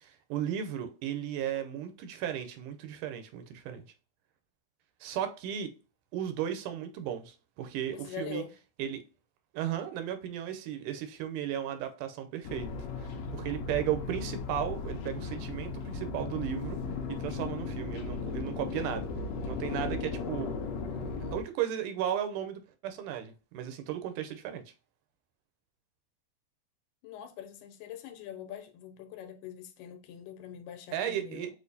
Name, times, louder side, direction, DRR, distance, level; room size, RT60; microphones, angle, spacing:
voice 1, 0.0-3.8 5.0-5.7 6.1-8.4 8.8-9.0 9.5-12.7 13.0-16.8 17.1-19.1 19.5-20.5 21.2-24.6 30.9-31.5, right 10 dB, 80° right, 2.1 m, -35 dB
voice 2, 7.9-8.5 27.0-31.5, left 8 dB, 85° left, 2.3 m, -43 dB
sound 1, 12.4-21.4, left 4 dB, 70° left, 1.6 m, -36 dB
6.4 x 2.6 x 2.6 m
omnidirectional pair, 3.7 m